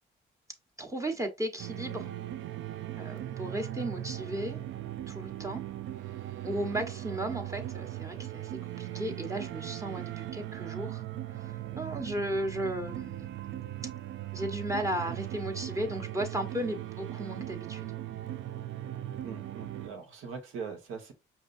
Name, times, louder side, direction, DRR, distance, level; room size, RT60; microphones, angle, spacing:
voice 1, 0.8-2.1 3.0-4.7 5.1-5.6 6.4-11.0 11.4-13.3 14.3-17.9, right 1 dB, 15° right, 1.0 m, -35 dB
sound 1, 1.6-19.9, right 13 dB, 70° right, 0.4 m, -39 dB
voice 2, 19.2-21.1, right 5 dB, 90° right, 1.2 m, -41 dB
5.2 x 2.7 x 2.5 m
cardioid pair, 90°, 20 cm